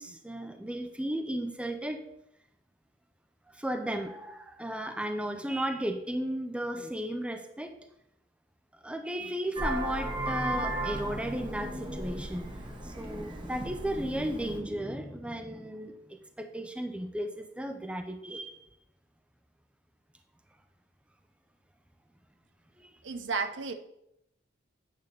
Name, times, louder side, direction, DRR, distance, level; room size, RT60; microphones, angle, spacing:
voice 1, 0.0-2.1 3.5-7.8 8.8-18.7 22.8-22.9, right 1 dB, 5° right, 6 dB, 0.5 m, -35 dB
Vehicle horn car horn honking, 9.6-14.6, right 1 dB, 25° right, 1.1 m, -35 dB
voice 2, 23.0-23.7, right 4 dB, 70° right, 8 dB, 0.7 m, -32 dB
9.1 x 3.5 x 6.6 m, 0.80 s
head